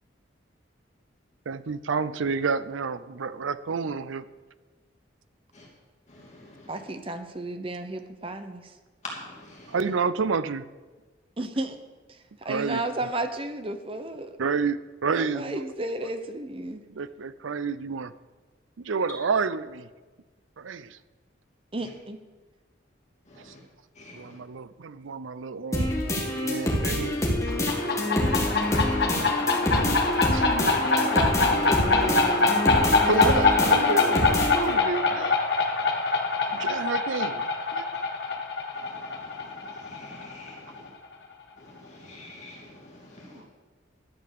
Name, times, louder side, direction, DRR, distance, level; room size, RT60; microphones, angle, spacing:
voice 1, 1.5-4.2 9.7-10.6 12.5-12.8 14.4-15.6 16.9-18.1 18.8-19.9 20.6-21.0 24.1-25.9 26.4-27.1 29.7-31.3 33.0-35.4 36.5-37.8, right 5 dB, 90° right, 15 dB, 0.5 m, -30 dB
voice 2, 6.1-6.7 9.0-9.8 23.3-23.6 24.0-24.4 28.2-29.9 36.5-36.8 38.8-40.9 41.6-43.4, left 2 dB, 35° left, -3 dB, 2.6 m, -46 dB
voice 3, 6.7-8.7 11.4-11.8 12.1-14.4 15.1-16.8 21.7-22.2 31.0-32.7 43.2-43.5, right 1 dB, 30° right, 8 dB, 0.8 m, -33 dB
sound 1, 25.7-34.7, left 1 dB, 15° left, 1.7 m, -26 dB
sound 2, 27.5-40.9, left 3 dB, 60° left, 1.4 m, -24 dB
11.5 x 7.9 x 6.8 m, 1.3 s
head